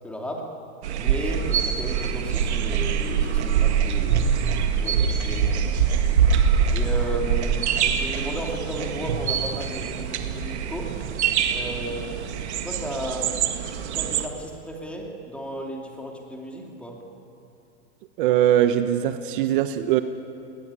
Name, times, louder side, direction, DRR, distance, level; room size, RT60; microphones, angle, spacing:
voice 1, 0.0-0.5 1.0-5.6 6.7-10.9 11.5-12.3 12.6-13.4 13.9-17.0, right 1 dB, 5° left, 0 dB, 2.6 m, -34 dB
sound 1, 0.8-14.3, right 7 dB, 85° right, 2.0 m, -24 dB
sound 2, 2.0-4.0, left 3 dB, 45° left, 4.4 m, -42 dB
voice 2, 18.2-20.0, right 11 dB, 50° right, 10 dB, 1.0 m, -21 dB
20.0 x 19.0 x 9.8 m, 2.8 s
supercardioid pair, 150°, 33 cm